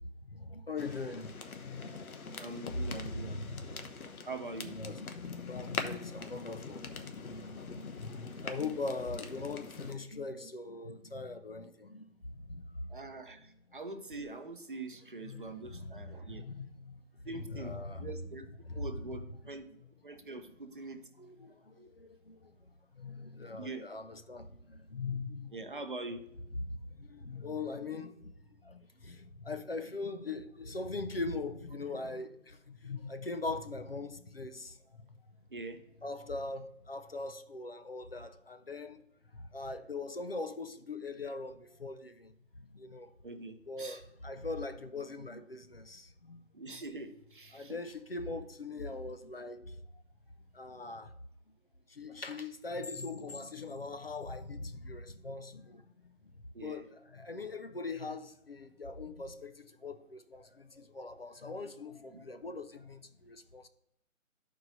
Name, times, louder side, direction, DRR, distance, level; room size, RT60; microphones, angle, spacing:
voice 1, 0.2-2.5 2.8-3.8 4.1-4.3 4.6-13.0 13.3-13.4 15.2-18.1 18.6-19.9 20.2-20.4 21.2-25.6 26.5-28.3 28.6-35.3 36.0-39.0 39.3-43.1 43.7-46.4 47.5-50.0 50.5-51.1 51.9-63.7, left 3 dB, 45° left, 0.5 m, -41 dB
sound 1, 0.8-9.9, left 4 dB, 85° left, 1.1 m, -43 dB
voice 2, 2.4-3.4 4.2-4.8 10.8-10.9 12.9-16.4 17.2-18.5 18.7-19.7 20.0-21.1 21.8-21.9 23.6-23.9 25.5-26.2 35.5-35.8 43.2-44.0 46.5-47.8 56.5-56.8, right 3 dB, 40° right, 0.7 m, -44 dB
12.5 x 4.6 x 3.9 m
hypercardioid pair, 175°, 42 cm